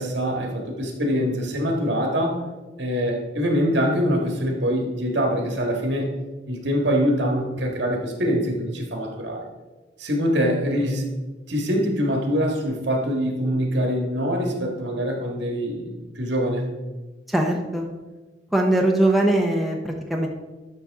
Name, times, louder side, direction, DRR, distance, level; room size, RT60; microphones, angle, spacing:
voice 1, 0.0-2.4 2.8-6.1 6.5-9.4 10.0-11.1 11.5-16.7, equal, 70° right, 1 dB, 1.8 m, -24 dB
voice 2, 17.3-17.9 18.5-20.3, right 1 dB, ahead, 0 dB, 0.7 m, -21 dB
12.0 x 5.8 x 3.6 m, 1.2 s
head